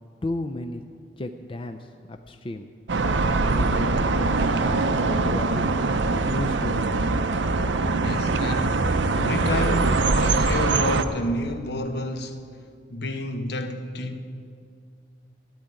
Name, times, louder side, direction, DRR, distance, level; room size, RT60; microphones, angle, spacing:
voice 1, 0.2-0.8 1.2-2.7 3.2-5.6 6.3-6.9, left 2 dB, 30° left, 0.5 m, -34 dB
sound 1, 2.9-11.0, right 3 dB, 85° right, 0.7 m, -22 dB
voice 2, 7.9-12.4 12.9-14.2, left 1 dB, 65° left, 1.0 m, -30 dB
12.5 x 8.9 x 9.4 m
head